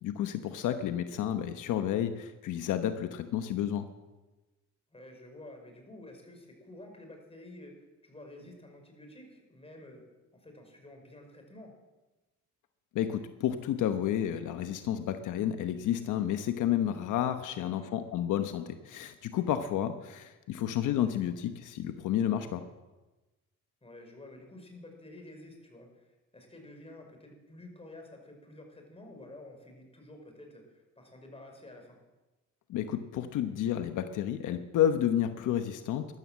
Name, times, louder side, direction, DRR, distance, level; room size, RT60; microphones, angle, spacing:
voice 1, 0.0-3.9 12.9-22.6 32.7-36.1, left 10 dB, 85° left, 8 dB, 1.0 m, -31 dB
voice 2, 4.9-10.0 10.3-11.7 17.4-18.0 22.4-22.6 23.8-32.0, left 1 dB, 20° left, 3 dB, 5.1 m, -50 dB
13.5 x 12.5 x 7.6 m, 1.1 s
cardioid pair, 90°, 30 cm